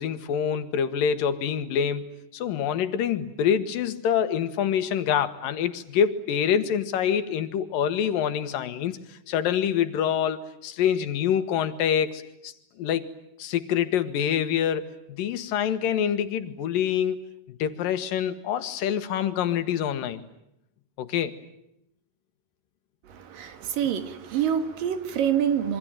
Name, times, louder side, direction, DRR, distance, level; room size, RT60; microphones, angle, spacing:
voice 1, 0.0-13.1 13.4-14.9 15.2-20.2 21.0-21.3, left 8 dB, 85° left, 3.1 m, -26 dB
voice 2, 23.0-25.8, right 9 dB, 80° right, 3.5 m, -26 dB
26.5 x 24.0 x 9.0 m
omnidirectional pair, 3.9 m